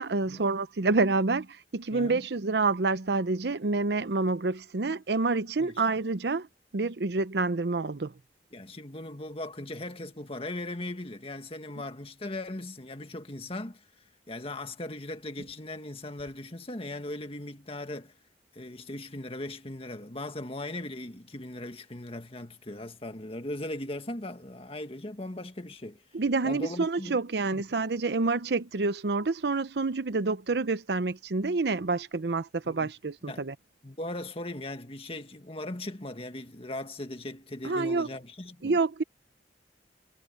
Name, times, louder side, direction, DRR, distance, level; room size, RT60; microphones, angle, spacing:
voice 1, 0.0-6.5 6.7-8.1 26.1-33.5 37.6-38.1 38.6-39.0, right 3 dB, 65° right, 0.7 m, -28 dB
voice 2, 1.9-2.3 5.6-5.7 8.5-13.8 14.3-18.1 18.5-26.0 26.4-27.2 27.5-27.6 32.7-32.9 33.3-33.5 33.8-38.8, left 1 dB, 35° left, 1.8 m, -38 dB
head